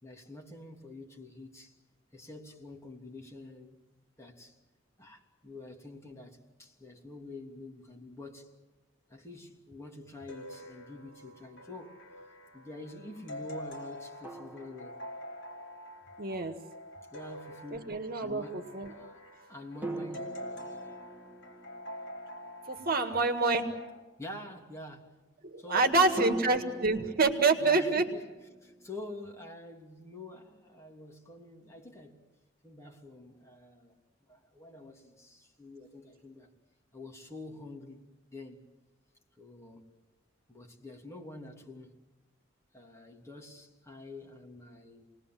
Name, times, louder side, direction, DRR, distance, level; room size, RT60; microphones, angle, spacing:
voice 1, 0.0-1.8 2.1-3.8 4.2-4.5 5.0-8.5 9.1-12.0 12.5-15.0 17.1-20.5 24.2-25.2 25.6-26.4 27.6-28.2 28.6-32.3 32.6-36.5 36.9-38.0 38.3-38.7 39.4-39.9 40.5-42.0 42.7-45.0, left 2 dB, 15° left, 3.0 m, -47 dB
sound 1, 10.3-24.0, equal, 65° left, 4.3 m, -46 dB
sound 2, 10.6-10.8 14.2-15.7 19.8-23.5 26.2-28.9, right 2 dB, 10° right, 1.8 m, -43 dB
voice 2, 16.2-16.6 17.7-18.9 22.7-23.7 25.4-28.0, right 3 dB, 50° right, 1.9 m, -27 dB
28.0 x 20.0 x 7.7 m
head